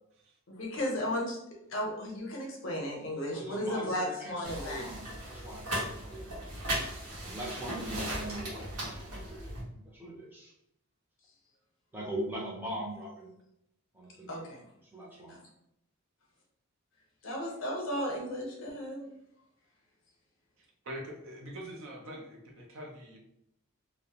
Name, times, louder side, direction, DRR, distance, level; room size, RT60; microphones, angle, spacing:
voice 1, 0.5-1.4 1.7-4.9 14.3-14.6 15.3-15.4 17.2-19.1, equal, 55° left, 0 dB, 0.6 m, -34 dB
voice 2, 3.3-6.5 7.2-9.5 9.9-10.5 11.9-13.3 13.9-14.4 14.9-15.4, right 1 dB, 10° right, -5 dB, 0.5 m, -41 dB
sound 1, 4.4-9.6, right 1 dB, 85° right, 0.9 m, -37 dB
voice 3, 5.3-5.6 20.6-23.2, equal, 60° right, 0 dB, 0.5 m, -44 dB
2.4 x 2.1 x 2.8 m, 0.79 s
head